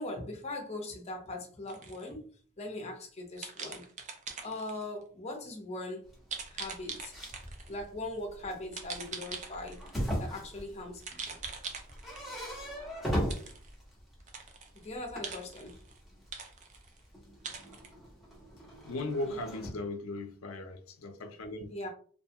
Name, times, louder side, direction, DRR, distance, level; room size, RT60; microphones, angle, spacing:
voice 1, 0.0-2.3 2.6-3.8 4.4-6.1 6.5-7.1 7.7-9.8 10.2-11.4 14.8-15.8 19.2-19.4 21.7-21.9, left 2 dB, 30° left, 0.7 m, -40 dB
sound 1, 1.7-2.1 3.4-4.8 6.3-7.7 8.7-10.0 11.0-12.4 13.3-13.7 14.2-14.9 15.2-16.0 16.3-17.0 17.4-17.9, right 5 dB, 35° right, 0.4 m, -42 dB
sound 2, 6.0-14.5 14.8-19.7, equal, ahead, 1.0 m, -39 dB
voice 2, 18.8-21.7, left 2 dB, 75° left, 0.5 m, -37 dB
2.6 x 2.3 x 2.8 m
head